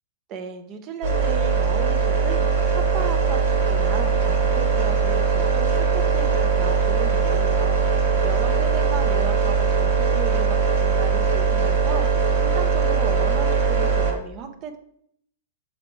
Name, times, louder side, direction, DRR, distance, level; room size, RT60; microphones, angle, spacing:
voice 1, 0.3-14.8, right 6 dB, 35° right, 8 dB, 1.0 m, -35 dB
sound 1, 1.0-14.1, right 5 dB, 60° right, 1.4 m, -20 dB
7.2 x 4.7 x 3.3 m, 0.68 s
figure-of-eight pair, 100°, 0 cm